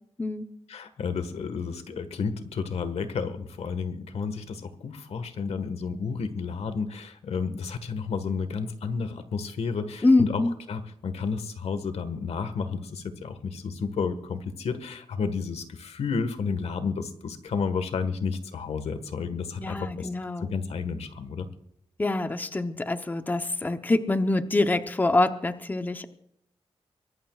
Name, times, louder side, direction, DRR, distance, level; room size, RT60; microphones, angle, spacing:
voice 1, 0.7-10.4 10.7-20.1 20.4-21.5, left 5 dB, 90° left, 10 dB, 1.6 m, -31 dB
voice 2, 10.0-10.5 19.6-20.5 22.0-26.1, left 2 dB, 15° left, 9 dB, 0.8 m, -25 dB
23.5 x 18.0 x 2.4 m, 0.75 s
wide cardioid pair, 150°, 10 cm